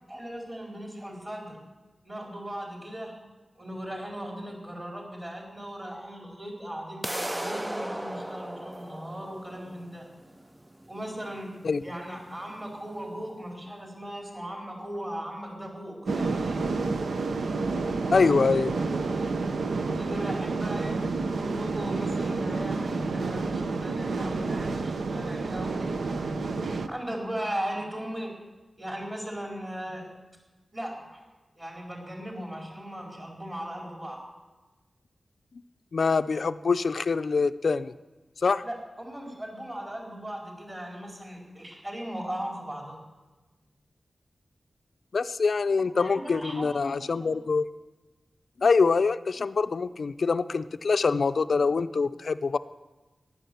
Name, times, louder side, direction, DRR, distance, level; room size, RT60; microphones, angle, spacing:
voice 1, 0.1-1.6 2.0-3.2 3.6-10.1 10.9-11.5 11.8-16.6 19.8-21.1 21.4-26.0 26.9-28.4 28.8-30.1 30.7-31.2 31.6-34.2 38.6-43.0 46.0-47.4, equal, 30° right, -1 dB, 4.1 m, -38 dB
sound 1, 7.0-13.0, right 1 dB, 10° right, 0.4 m, -37 dB
sound 2, 16.1-26.9, right 3 dB, 85° right, 0.7 m, -29 dB
voice 2, 18.1-18.7 35.9-37.9 38.4-38.6 45.1-47.7 48.6-52.6, left 4 dB, 70° left, 12 dB, 0.4 m, -24 dB
15.0 x 11.0 x 6.9 m, 1.2 s
wide cardioid pair, 90°, 0 cm